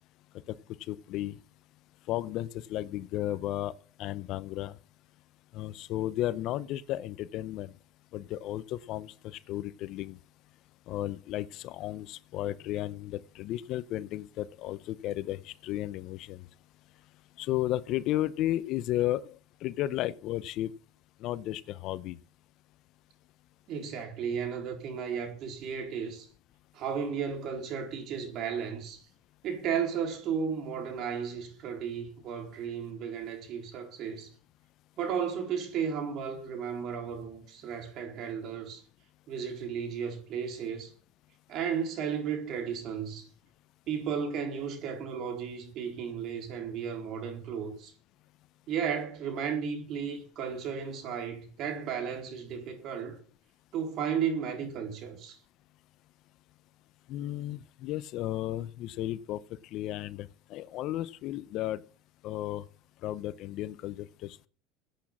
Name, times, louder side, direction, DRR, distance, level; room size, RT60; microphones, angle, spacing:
voice 1, 0.9-1.3 2.1-3.7 4.0-4.7 5.5-7.7 8.1-10.2 10.9-16.5 17.4-20.7 21.2-22.2 57.1-59.4 59.7-61.8 62.2-62.6 63.0-64.5, left 14 dB, 55° left, 0.7 m, -34 dB
voice 2, 23.7-26.3 26.7-29.0 29.4-34.3 35.0-38.8 39.3-40.9 41.5-43.3 43.9-47.9 48.7-53.2 53.7-55.4, right 7 dB, 50° right, 4.3 m, -34 dB
15.0 x 8.6 x 7.4 m
supercardioid pair, 120°, 0 cm